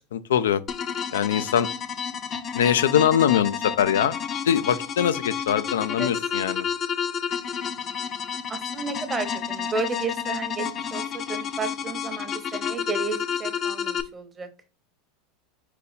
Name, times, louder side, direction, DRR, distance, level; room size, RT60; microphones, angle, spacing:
voice 1, 0.1-0.6 1.1-1.7 2.5-4.2 4.4-6.7, left 9 dB, 85° left, 0.3 m, -22 dB
sound 1, 0.7-14.0, left 7 dB, 35° left, 0.5 m, -30 dB
voice 2, 8.5-14.5, right 3 dB, 20° right, 0.8 m, -32 dB
4.1 x 2.6 x 4.0 m
hypercardioid pair, 105°, 0 cm